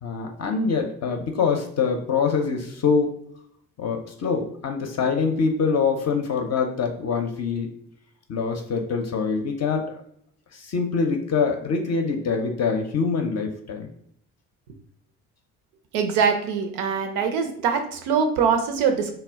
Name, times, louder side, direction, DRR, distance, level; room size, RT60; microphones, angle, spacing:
voice 1, 0.0-3.1 3.8-7.7 8.3-10.0 10.5-13.9, left 5 dB, 40° left, 3 dB, 0.5 m, -24 dB
voice 2, 15.9-19.1, right 6 dB, 75° right, 5 dB, 0.6 m, -23 dB
2.1 x 2.0 x 3.4 m, 0.70 s
hypercardioid pair, 50°, 39 cm